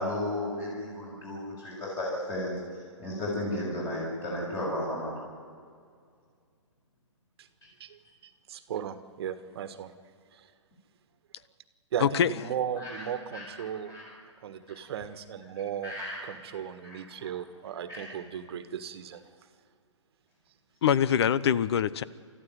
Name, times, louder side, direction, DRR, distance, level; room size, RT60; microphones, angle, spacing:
voice 1, 0.0-2.5 3.0-5.2 12.8-13.0 13.3-13.4 13.8-14.1 15.8-16.2 16.8-17.3 17.9-18.1, left 1 dB, 20° left, -4 dB, 7.2 m, -34 dB
voice 2, 8.5-9.9 11.9-13.9 14.4-15.9 16.2-19.2, right 9 dB, 55° right, 11 dB, 1.5 m, -36 dB
voice 3, 12.0-12.4 20.8-22.0, left 8 dB, 55° left, 18 dB, 0.9 m, -24 dB
30.0 x 14.0 x 9.6 m, 2.2 s
hypercardioid pair, 135°, 16 cm